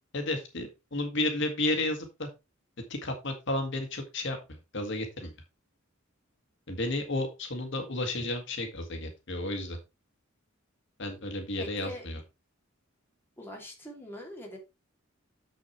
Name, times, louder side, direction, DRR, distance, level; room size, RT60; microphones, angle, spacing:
voice 1, 0.1-2.3 2.9-4.4 4.7-5.3 6.7-9.8 11.0-12.2, left 2 dB, 65° left, 5 dB, 1.7 m, -32 dB
voice 2, 11.6-12.0 13.4-14.6, equal, 10° left, -1 dB, 2.8 m, -42 dB
7.1 x 6.2 x 4.4 m, 0.25 s
head